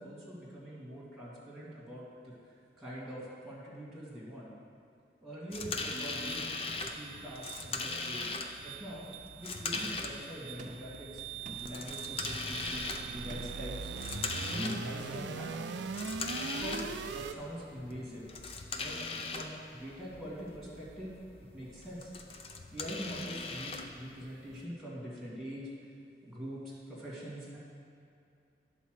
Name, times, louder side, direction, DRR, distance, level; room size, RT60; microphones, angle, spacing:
voice 1, 0.0-2.3 2.8-4.5 5.2-6.5 6.8-8.3 8.6-9.1 9.4-11.2 11.6-13.9 14.5-15.8 16.4-18.3 18.8-19.0 19.3-21.1 21.5-22.1 22.7-25.7 26.2-27.6, equal, ahead, -8 dB, 2.1 m, -43 dB
sound 1, 5.5-24.6, left 3 dB, 35° left, 0.5 m, -40 dB
sound 2, 6.0-17.3, right 6 dB, 85° right, 0.4 m, -42 dB
sound 3, 9.7-10.1 10.6-11.0 11.4-11.8 13.3-13.7, right 2 dB, 45° right, 0.6 m, -48 dB
10.0 x 4.2 x 6.4 m, 2.5 s
head